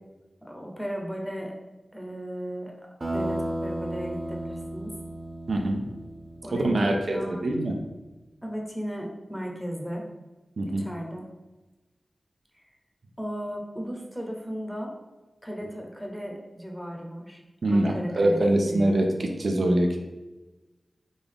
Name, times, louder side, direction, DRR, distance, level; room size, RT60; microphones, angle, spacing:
voice 1, 0.4-1.5 1.9-5.0 6.4-7.4 8.4-10.1 10.6-11.3 12.5-12.6 13.2-14.9 15.4-17.4 17.7-18.9, equal, ahead, 0 dB, 0.7 m, -35 dB
sound 1, 3.0-7.3, right 1 dB, 35° right, 0.7 m, -34 dB
voice 2, 5.5-5.9 6.5-7.8 10.6-10.9 17.6-20.0, right 1 dB, 75° right, 2 dB, 0.4 m, -24 dB
3.8 x 2.3 x 3.5 m, 1.1 s
cardioid pair, 55°, 0 cm